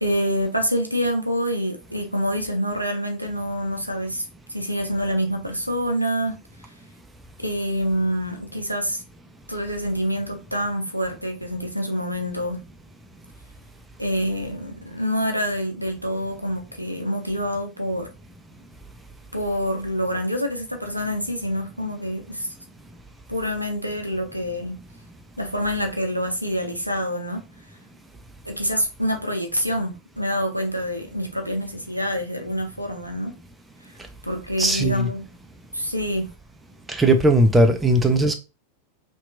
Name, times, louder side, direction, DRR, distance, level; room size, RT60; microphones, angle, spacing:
voice 1, 0.0-4.2 4.5-6.4 7.4-9.0 9.5-12.6 14.0-18.1 19.3-22.5 23.3-24.7 25.4-27.4 28.5-33.3 34.2-35.2 35.7-36.3, equal, 90° right, 0.5 m, -26 dB
voice 2, 34.6-35.1 36.9-38.3, right 1 dB, 10° right, 0.4 m, -18 dB
2.8 x 2.2 x 2.4 m
figure-of-eight pair, 90°, 0 cm